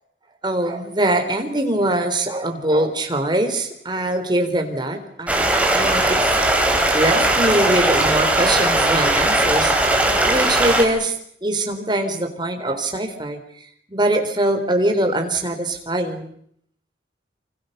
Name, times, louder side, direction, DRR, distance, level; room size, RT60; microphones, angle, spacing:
voice 1, 0.4-9.7 10.2-11.2 11.4-13.4 13.9-16.3, right 1 dB, 25° right, 5 dB, 3.9 m, -22 dB
Stream, 5.3-10.8, right 1 dB, 5° right, 4.6 m, -18 dB
28.0 x 26.0 x 6.7 m, 0.69 s
head